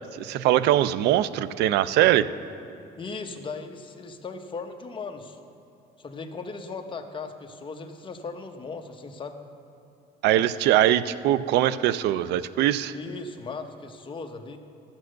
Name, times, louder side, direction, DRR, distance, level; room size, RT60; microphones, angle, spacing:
voice 1, 0.1-2.3 10.2-13.0, right 12 dB, 80° right, 15 dB, 0.4 m, -22 dB
voice 2, 3.0-5.4 6.0-9.4 12.9-14.6, left 4 dB, 30° left, 5 dB, 1.0 m, -37 dB
13.0 x 7.8 x 6.4 m, 2.8 s
cardioid pair, 110°, 17 cm